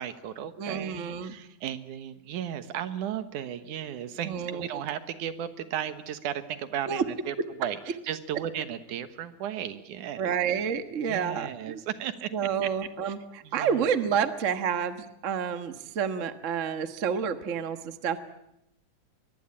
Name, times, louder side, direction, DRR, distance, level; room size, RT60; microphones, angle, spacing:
voice 1, 0.0-10.4 11.0-12.3 12.6-12.7 13.0-13.1 13.4-13.9, right 10 dB, 75° right, 11 dB, 2.7 m, -35 dB
voice 2, 0.6-1.3 4.2-4.7 6.9-7.0 10.2-11.8 12.3-18.2, right 7 dB, 50° right, 10 dB, 0.8 m, -29 dB
23.5 x 22.0 x 8.8 m, 0.82 s
omnidirectional pair, 3.6 m